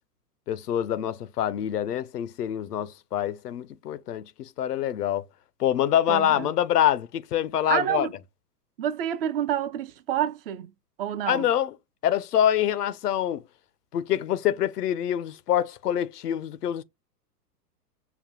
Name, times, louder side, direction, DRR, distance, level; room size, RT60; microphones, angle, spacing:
voice 1, 0.5-5.2 5.6-8.1 11.3-11.7 12.0-13.4 13.9-16.8, left 11 dB, 70° left, 0.6 m, -25 dB
voice 2, 6.1-6.5 7.7-8.1 8.8-10.7 11.0-11.5, right 10 dB, 40° right, 0.5 m, -28 dB
5.8 x 2.1 x 2.8 m
figure-of-eight pair, 105°, 49 cm